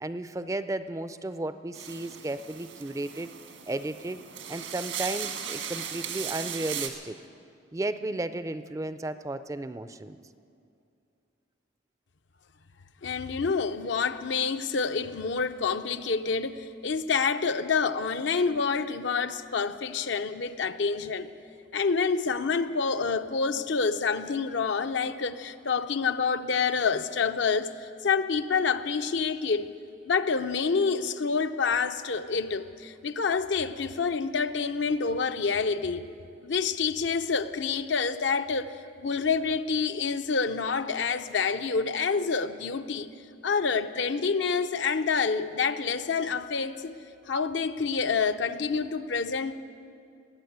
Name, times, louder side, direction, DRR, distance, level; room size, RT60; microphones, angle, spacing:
voice 1, 0.0-3.3 3.7-4.2 4.5-7.2 7.7-10.2, right 2 dB, 15° right, 0.4 m, -34 dB
sound 1, 1.7-6.9, right 8 dB, 80° right, 1.6 m, -37 dB
voice 2, 13.0-21.3 21.7-27.7 28.0-29.7 30.0-36.0 36.4-43.1 43.4-47.0 47.3-49.5, left 5 dB, 70° left, 0.6 m, -27 dB
20.0 x 8.8 x 8.0 m
head